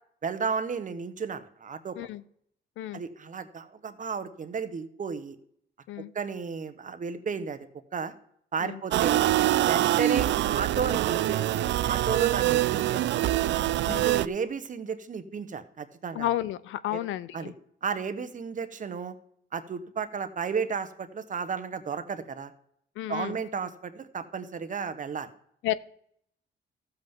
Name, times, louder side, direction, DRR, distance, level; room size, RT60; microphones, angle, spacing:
voice 1, 0.2-2.0 2.9-5.4 6.1-7.7 7.9-8.1 8.5-9.2 9.7-13.4 13.9-16.3 16.9-17.0 17.3-17.5 17.8-19.1 19.5-22.5 23.1-25.3, right 6 dB, 40° right, 11 dB, 1.0 m, -33 dB
sound 1, 8.9-14.3, right 14 dB, 65° right, 0.4 m, -24 dB
voice 2, 16.1-17.5 23.0-23.4 25.6-25.7, left 13 dB, 80° left, 17 dB, 0.5 m, -32 dB
13.5 x 7.9 x 3.6 m, 0.69 s
cardioid pair, 90°, 20 cm